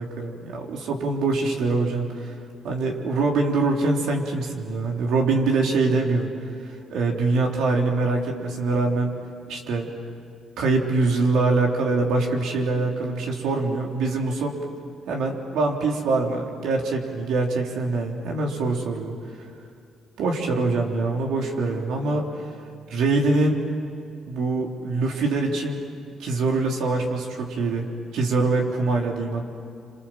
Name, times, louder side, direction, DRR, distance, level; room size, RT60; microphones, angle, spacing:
voice 1, 0.0-2.4 2.6-6.3 6.6-9.2 9.5-9.9 10.6-14.6 15.1-19.5 20.2-22.5 22.9-23.6 24.3-25.8 26.2-29.5, right 3 dB, 85° right, 0 dB, 3.7 m, -24 dB
29.0 x 26.5 x 7.6 m, 2.4 s
cardioid pair, 90°, 0 cm